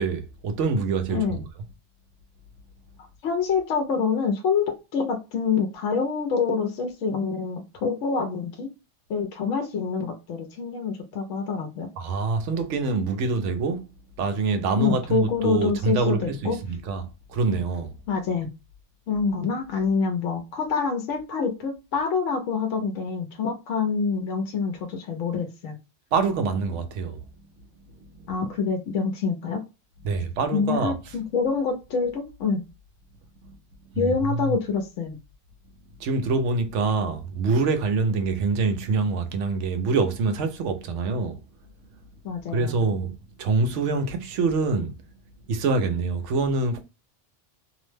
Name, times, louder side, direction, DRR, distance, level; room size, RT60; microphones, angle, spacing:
voice 1, 0.0-1.4 12.0-13.9 14.2-17.9 26.1-27.2 28.2-28.3 30.0-31.1 34.0-34.6 36.0-41.4 42.5-44.9 45.5-46.8, right 4 dB, 75° right, 0.9 m, -25 dB
voice 2, 1.1-1.4 3.0-8.7 9.1-11.9 14.8-16.6 18.1-18.5 19.1-25.8 28.3-29.6 30.5-32.6 34.0-35.2 42.2-42.8, left 5 dB, 80° left, 1.0 m, -26 dB
2.7 x 2.1 x 3.1 m
omnidirectional pair, 1.2 m